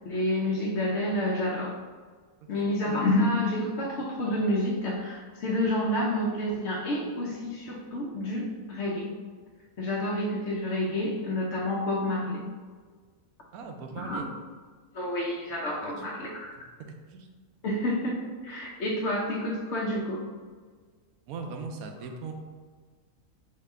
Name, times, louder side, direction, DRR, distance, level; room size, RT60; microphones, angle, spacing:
voice 1, 0.1-1.7 2.5-9.1 9.8-12.4 14.0-14.2 14.9-16.6 17.6-18.2 18.4-20.2, left 1 dB, 60° left, -4 dB, 0.9 m, -29 dB
voice 2, 13.5-14.3 15.8-16.3 17.1-17.3 21.3-22.3, right 4 dB, 90° right, 4 dB, 1.1 m, -39 dB
4.8 x 3.0 x 3.5 m, 1.5 s
omnidirectional pair, 1.5 m